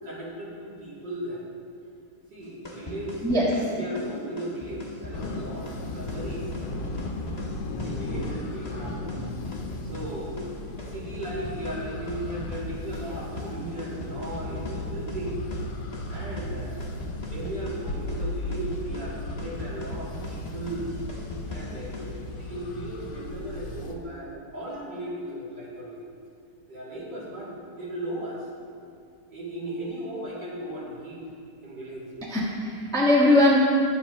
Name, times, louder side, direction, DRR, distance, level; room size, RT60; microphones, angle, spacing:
voice 1, 0.0-1.4 2.3-3.2 3.5-6.5 7.8-9.0 9.8-15.4 16.1-17.0 17.3-20.9 21.5-26.0 26.7-28.5 29.3-31.2 31.6-32.1, right 1 dB, 70° right, -8 dB, 3.4 m, -36 dB
sound 1, 2.4-22.2, left 2 dB, 25° left, 1.3 m, -40 dB
voice 2, 3.2-3.6 32.3-33.6, left 1 dB, ahead, -5 dB, 1.3 m, -20 dB
sound 2, 5.1-24.0, left 1 dB, 80° left, 1.6 m, -36 dB
21.5 x 7.2 x 3.0 m, 2.4 s
omnidirectional pair, 1.9 m